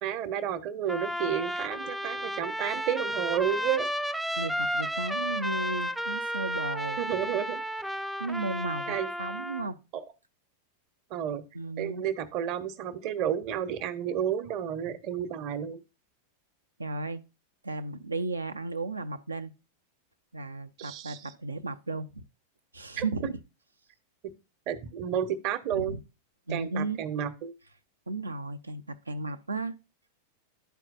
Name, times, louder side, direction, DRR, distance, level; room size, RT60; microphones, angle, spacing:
voice 1, 0.0-3.9 7.0-7.6 8.9-9.1 9.9-10.0 11.1-11.4 11.8-15.8 20.8-21.3 23.0-23.3 24.7-26.0 26.5-27.5, right 9 dB, 40° right, 0.8 m, -31 dB
Trumpet, 0.9-9.7, equal, 5° right, 0.3 m, -33 dB
voice 2, 4.4-7.0 8.2-9.8 11.5-12.0 16.8-17.2 17.6-19.5 20.3-22.2 22.7-23.4 25.7-26.0 26.5-27.0 28.1-29.8, right 3 dB, 80° right, 0.5 m, -34 dB
12.0 x 4.5 x 2.5 m
figure-of-eight pair, 90°, 0 cm